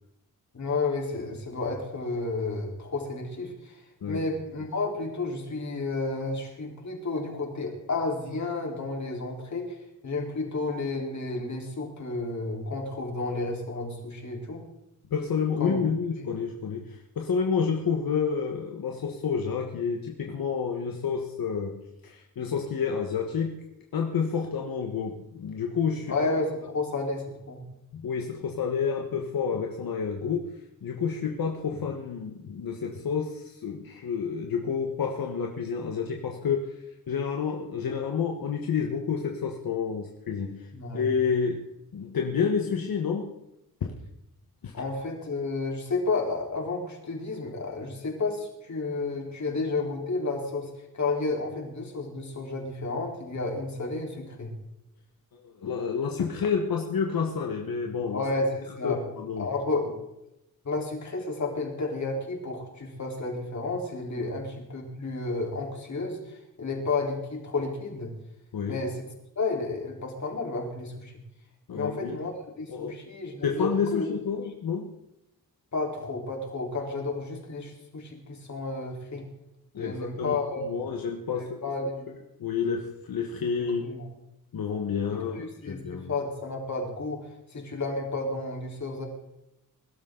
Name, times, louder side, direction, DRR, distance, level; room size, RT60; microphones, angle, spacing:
voice 1, 0.5-14.7 15.6-15.8 16.2-16.3 26.1-27.6 40.7-41.1 44.7-54.5 58.1-59.0 59.4-59.9 60.6-68.1 68.6-69.1 69.4-71.2 71.7-74.2 75.7-79.2 79.7-80.8 81.3-82.1 83.8-84.1 85.3-89.1, left 3 dB, 55° left, 0 dB, 4.0 m, -31 dB
voice 2, 15.1-23.6 23.9-26.1 27.9-30.5 30.8-36.7 37.1-40.7 40.9-41.6 41.9-43.3 43.8-43.9 44.6-44.7 55.3-58.2 58.8-59.5 64.2-64.3 68.5-68.8 71.7-72.2 72.7-73.0 73.4-74.9 79.7-80.4 80.6-81.6 82.4-83.8 84.5-86.1, left 6 dB, 80° left, 2 dB, 1.5 m, -29 dB
21.5 x 12.5 x 3.9 m, 0.87 s
wide cardioid pair, 135°, 35 cm